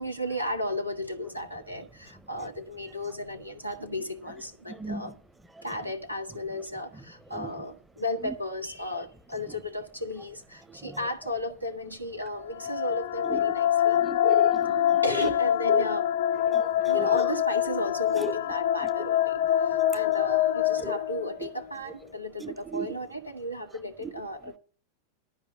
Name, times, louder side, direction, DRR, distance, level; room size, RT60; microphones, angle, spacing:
voice 1, 0.0-5.1 5.6-14.0 15.0-16.1 16.8-24.5, left 1 dB, 90° right, 1.1 m, -34 dB
voice 2, 4.8-5.1 7.3-7.5 8.2-8.3 10.8-11.0 13.2-13.4 14.0-14.8 15.1-15.2 15.7-15.8 16.5-16.7 16.9-17.2 18.2-18.3 20.8-21.0 22.4-22.9 24.0-24.1, right 4 dB, 5° right, 0.6 m, -35 dB
sound 1, 12.4-21.6, left 11 dB, 55° left, 0.5 m, -25 dB
12.0 x 5.0 x 8.6 m
figure-of-eight pair, 90°, 0 cm